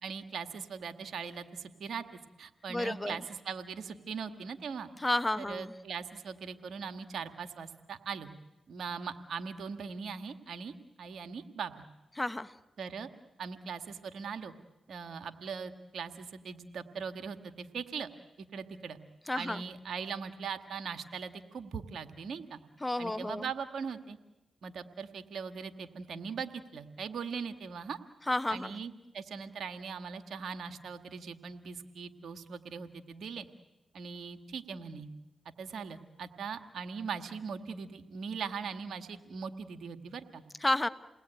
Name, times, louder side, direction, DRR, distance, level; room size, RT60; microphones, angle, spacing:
voice 1, 0.0-2.0 2.4-4.9 5.4-8.3 8.7-10.7 11.0-11.7 12.8-13.1 13.4-14.5 14.9-18.1 18.4-19.0 19.4-22.6 23.0-24.2 24.6-28.0 28.5-33.5 33.9-35.1 35.6-40.4, right 6 dB, 75° right, 8 dB, 1.8 m, -40 dB
voice 2, 2.7-3.2 5.0-5.7 12.2-12.5 19.3-19.6 22.8-23.5 28.3-28.7 40.6-40.9, left 1 dB, 20° left, 12 dB, 1.3 m, -31 dB
29.0 x 19.5 x 9.2 m, 1.1 s
supercardioid pair, 40°, 0 cm